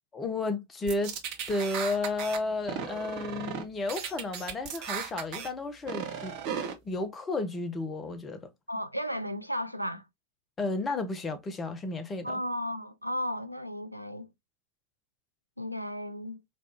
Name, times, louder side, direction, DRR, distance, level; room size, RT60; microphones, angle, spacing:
voice 1, 0.1-1.2 1.5-6.4 6.8-8.5 10.6-12.4, left 2 dB, 20° left, 0.7 m, -32 dB
sound 1, 0.9-2.4 2.7-3.6 3.9-5.5 5.9-6.7, right 7 dB, 45° right, 0.8 m, -36 dB
voice 2, 8.7-10.1 12.2-14.3 15.6-16.4, equal, 90° right, 0.4 m, -34 dB
4.1 x 2.3 x 2.9 m
figure-of-eight pair, 90°, 0 cm